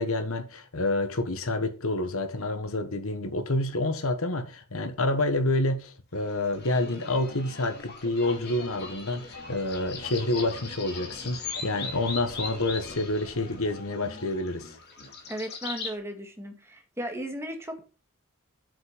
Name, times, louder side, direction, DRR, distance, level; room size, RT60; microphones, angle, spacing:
voice 1, 0.0-14.8, left 2 dB, 65° left, 1.5 m, -28 dB
sound 1, 6.3-15.9, left 4 dB, 50° left, 3.0 m, -40 dB
voice 2, 15.3-17.8, right 1 dB, 10° right, 1.9 m, -36 dB
8.0 x 7.5 x 5.1 m
head